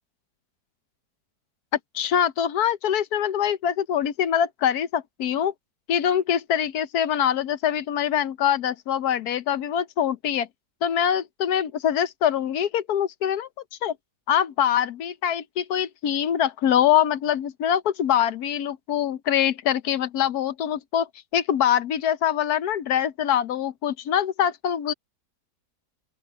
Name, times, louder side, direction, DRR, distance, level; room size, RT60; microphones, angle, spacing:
voice 1, 1.9-5.5 5.9-10.5 10.8-13.5 13.8-13.9 14.3-21.1 21.3-24.9, left 9 dB, 70° left, 1.3 m, -24 dB
open air
omnidirectional pair, 1.8 m